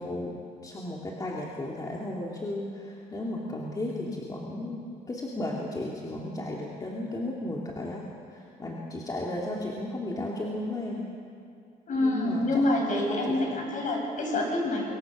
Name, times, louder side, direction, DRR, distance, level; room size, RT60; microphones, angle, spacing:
voice 1, 0.0-4.8 5.1-11.1 12.0-12.7 13.0-13.4, left 1 dB, 20° left, -3 dB, 2.9 m, -34 dB
voice 2, 11.9-14.9, left 1 dB, 50° left, 0 dB, 7.5 m, -27 dB
25.5 x 22.5 x 6.6 m, 2.4 s
cardioid pair, 110°, 17 cm